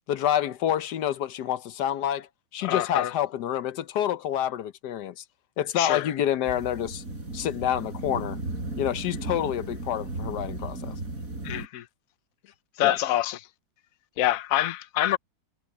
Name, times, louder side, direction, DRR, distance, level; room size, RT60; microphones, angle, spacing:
voice 1, 0.1-2.3 2.5-5.2 5.6-7.0 7.3-8.4 8.8-11.0 12.8-13.0, left 10 dB, 90° left, 1.4 m, -28 dB
voice 2, 2.6-3.1 5.8-6.1 11.4-11.8 12.8-13.4 14.2-15.2, left 13 dB, 60° left, 1.1 m, -26 dB
sound 1, 6.4-11.7, right 2 dB, 55° right, 5.7 m, -35 dB
omnidirectional pair, 1.7 m